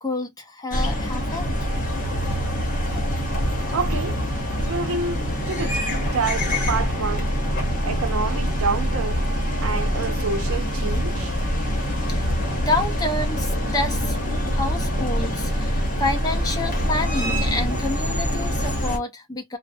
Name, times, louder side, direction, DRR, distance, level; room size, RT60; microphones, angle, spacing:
voice 1, 0.0-1.5 12.1-12.3 12.6-19.6, left 2 dB, 15° left, 0.5 m, -28 dB
sound 1, 0.7-19.0, equal, 40° left, 0.9 m, -24 dB
voice 2, 3.7-4.2 4.6-7.3 7.8-9.3 9.6-11.4, right 4 dB, 75° right, 0.6 m, -28 dB
2.4 x 2.1 x 2.5 m
head